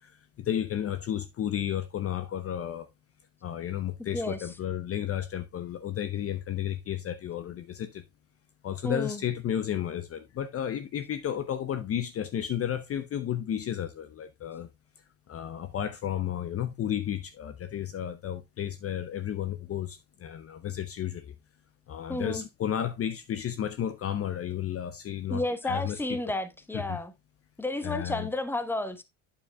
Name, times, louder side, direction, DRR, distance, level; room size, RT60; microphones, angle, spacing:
voice 1, 0.0-2.9 3.4-8.0 8.6-14.7 15.3-21.3 21.9-26.0 26.7-27.0 27.8-28.3, left 10 dB, 35° left, 0.7 m, -32 dB
voice 2, 4.1-4.5 8.8-9.2 22.1-22.4 25.3-27.1 27.6-29.0, left 2 dB, 5° left, 1.0 m, -32 dB
8.4 x 7.1 x 2.2 m
hypercardioid pair, 70°, 39 cm